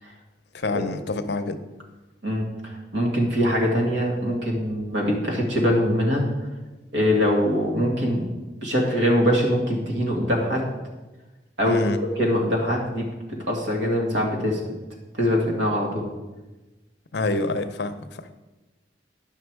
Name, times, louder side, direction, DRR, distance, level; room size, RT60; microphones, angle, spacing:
voice 1, 0.5-1.6 11.6-12.0 17.1-18.3, left 2 dB, 65° left, 10 dB, 0.6 m, -27 dB
voice 2, 2.2-6.2 6.9-8.3 8.6-10.7 11.6-13.1 13.5-14.6 15.2-16.0, equal, 90° right, 0 dB, 2.1 m, -23 dB
10.5 x 5.7 x 4.7 m, 1.1 s
head